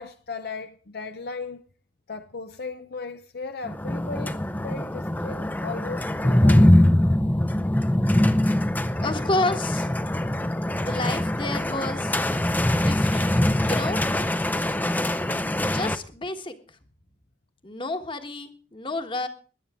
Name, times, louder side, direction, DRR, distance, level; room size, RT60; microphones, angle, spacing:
voice 1, 0.0-1.6 2.1-6.7, left 4 dB, 60° left, 0.7 m, -37 dB
sound 1, 3.7-16.0, left 1 dB, 10° left, 0.6 m, -23 dB
voice 2, 9.0-9.9 10.7-12.1 12.8-13.4 13.6-14.0 15.7-16.8 17.6-19.3, left 2 dB, 30° left, 1.4 m, -30 dB
21.0 x 10.5 x 3.6 m
head